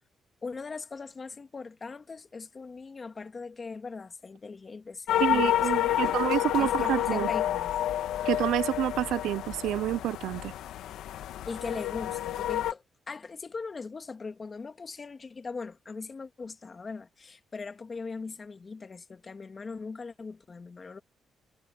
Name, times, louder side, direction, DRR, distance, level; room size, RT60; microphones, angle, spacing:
voice 1, 0.4-6.2 6.6-7.8 11.5-21.0, left 4 dB, 35° left, 2.5 m, -40 dB
sound 1, 5.1-12.7, left 12 dB, 80° left, 1.4 m, -29 dB
voice 2, 5.2-7.3 8.3-10.4, right 13 dB, 85° right, 0.5 m, -28 dB
cardioid pair, 90°, 0 cm